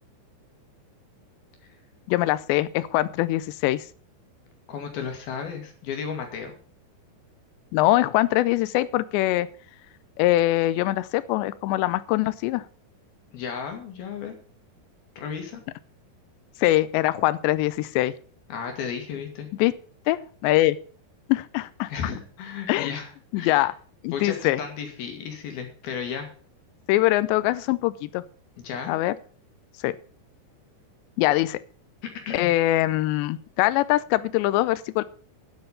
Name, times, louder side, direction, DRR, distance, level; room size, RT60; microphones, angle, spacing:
voice 1, 2.1-3.9 7.7-9.5 10.2-12.6 16.6-18.1 19.6-19.7 20.1-20.8 21.3-21.9 22.7-22.9 23.3-23.7 24.0-24.6 26.9-28.2 28.9-29.1 29.8-29.9 31.2-31.6 32.3-35.0, left 16 dB, 85° left, 16 dB, 2.9 m, -23 dB
voice 2, 4.7-6.5 13.3-14.3 15.2-15.6 18.5-19.5 21.9-23.1 23.4-23.7 24.1-26.3 28.6-28.9 32.3-32.5, left 7 dB, 65° left, 4 dB, 3.6 m, -34 dB
10.0 x 8.0 x 6.8 m, 0.43 s
omnidirectional pair, 5.0 m